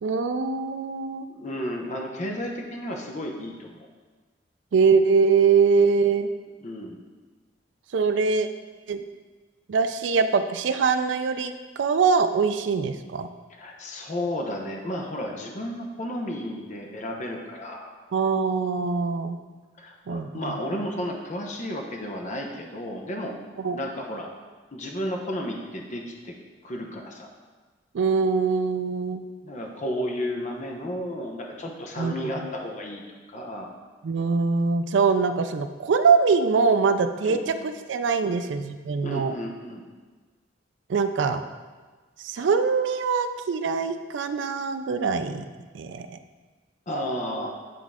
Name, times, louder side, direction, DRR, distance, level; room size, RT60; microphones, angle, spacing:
voice 1, 0.0-1.3 4.7-6.3 7.9-8.5 8.9-9.0 9.7-13.3 18.1-19.4 20.1-20.5 23.6-23.8 27.9-29.2 32.0-32.1 34.0-39.3 40.9-41.4 42.2-45.4 45.7-46.2, right 5 dB, 75° right, 9 dB, 0.4 m, -23 dB
voice 2, 1.3-3.9 6.6-7.0 13.5-17.9 19.8-23.3 23.7-24.3 24.7-26.4 26.6-27.3 29.4-33.0 33.3-33.7 37.2-37.5 38.2-38.4 39.0-39.8 46.9-47.6, equal, 40° left, 1 dB, 0.8 m, -33 dB
9.4 x 3.6 x 3.6 m, 1.4 s
head